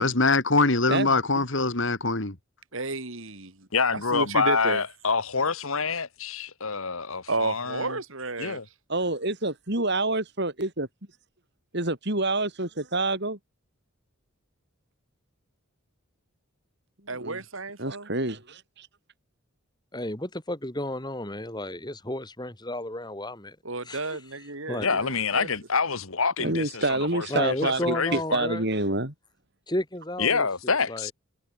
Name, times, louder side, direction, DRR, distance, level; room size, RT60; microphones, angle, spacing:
voice 1, 0.0-2.4, left 3 dB, 55° left, 2.6 m, -23 dB
voice 2, 0.9-1.4 8.9-10.9 11.7-13.4 17.0-17.4 17.8-18.9 26.4-29.1, right 2 dB, 50° right, 4.1 m, -28 dB
voice 3, 2.7-4.8 7.3-8.6 17.1-18.1 23.6-25.5, right 3 dB, 65° right, 3.6 m, -32 dB
voice 4, 3.7-8.0 8.4-8.7 24.8-26.8 27.1-28.5 30.2-31.1, left 5 dB, 75° left, 1.6 m, -27 dB
voice 5, 19.9-23.6 23.9-24.1 24.7-24.9 27.3-28.6 29.7-31.1, left 1 dB, 20° left, 3.4 m, -32 dB
head